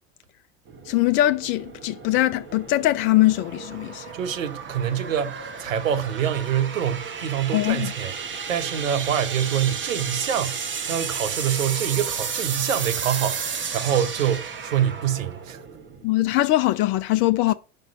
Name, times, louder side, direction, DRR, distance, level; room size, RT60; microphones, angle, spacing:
sound 1, 0.7-16.1, right 6 dB, 30° right, 1.3 m, -33 dB
voice 1, 0.9-4.1 7.5-7.9 16.0-17.5, left 16 dB, 30° left, 0.4 m, -21 dB
voice 2, 4.1-15.6, right 9 dB, 75° right, 0.9 m, -26 dB
5.4 x 5.2 x 6.0 m
figure-of-eight pair, 75°, 40 cm